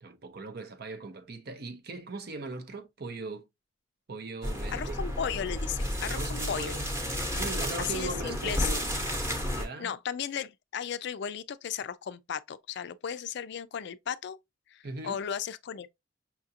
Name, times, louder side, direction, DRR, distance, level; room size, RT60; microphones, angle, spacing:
voice 1, 0.0-3.5 4.1-5.0 6.1-6.9 7.3-8.9 9.4-9.9 14.8-15.2, right 3 dB, 55° right, 0.7 m, -39 dB
sound 1, 4.4-9.7, equal, 15° right, 1.0 m, -32 dB
voice 2, 4.7-6.8 7.8-8.7 9.8-14.4 14.7-15.9, left 8 dB, 60° left, 0.4 m, -35 dB
5.7 x 2.4 x 2.7 m
head